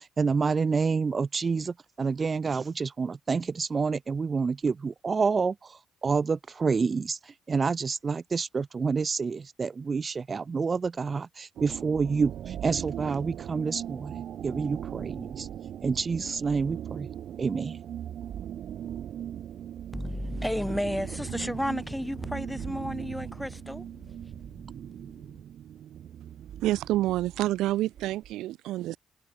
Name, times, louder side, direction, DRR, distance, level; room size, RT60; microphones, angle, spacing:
voice 1, 0.0-15.5 15.8-17.1 17.4-17.8, right 5 dB, 35° right, 0.4 m, -28 dB
sound 1, 11.6-28.3, right 10 dB, 70° right, 1.0 m, -39 dB
voice 2, 19.9-23.8 24.3-25.1, equal, 5° left, 2.9 m, -33 dB
voice 3, 26.6-29.0, right 15 dB, 90° right, 0.5 m, -28 dB
cardioid pair, 90°, 0 cm